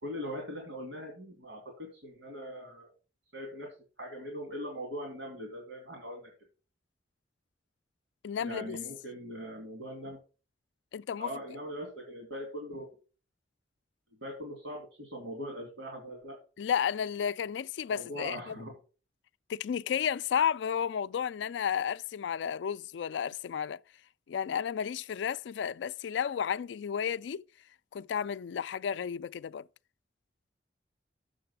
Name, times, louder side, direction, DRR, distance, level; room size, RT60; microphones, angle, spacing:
voice 1, 0.0-2.9 3.3-3.7 4.0-6.3 8.4-10.2 11.2-12.9 14.2-16.4 17.9-18.7, equal, 85° right, 2.9 m, -41 dB
voice 2, 8.2-8.8 10.9-11.3 16.6-18.6 19.5-23.8 24.3-27.4 27.9-29.7, left 8 dB, 80° left, 0.3 m, -32 dB
7.5 x 6.7 x 5.5 m
head